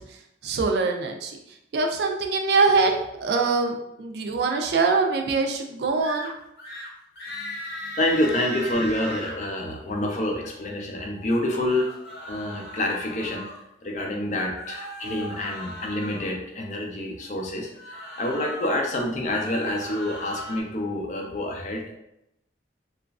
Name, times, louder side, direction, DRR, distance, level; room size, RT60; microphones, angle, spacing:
voice 1, 0.4-1.4 1.7-2.9 3.2-6.3, right 4 dB, 65° right, 3 dB, 0.4 m, -23 dB
sound 1, 6.0-6.3 6.6-6.9 7.2-9.4 11.4-13.6 14.5-16.3 17.7-18.7 19.2-20.6, equal, 65° left, 0.8 m, -37 dB
voice 2, 7.8-11.9 12.3-13.5 13.8-21.9, left 1 dB, 40° left, 1 dB, 0.4 m, -27 dB
3.0 x 2.4 x 2.3 m, 0.82 s
head